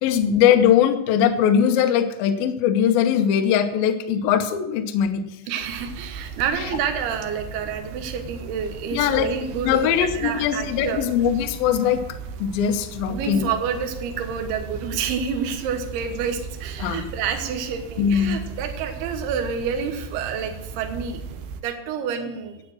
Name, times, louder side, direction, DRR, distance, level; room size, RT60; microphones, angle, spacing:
voice 1, 0.0-5.2 8.9-9.3 9.6-12.0 12.4-13.5 16.8-17.2 18.0-18.4, left 9 dB, 80° left, 6 dB, 2.1 m, -20 dB
voice 2, 5.5-11.0 13.1-22.6, right 7 dB, 65° right, 5 dB, 3.0 m, -29 dB
sound 1, 5.6-21.6, right 5 dB, 85° right, 2.2 m, -37 dB
12.0 x 8.8 x 6.4 m, 0.91 s
omnidirectional pair, 5.6 m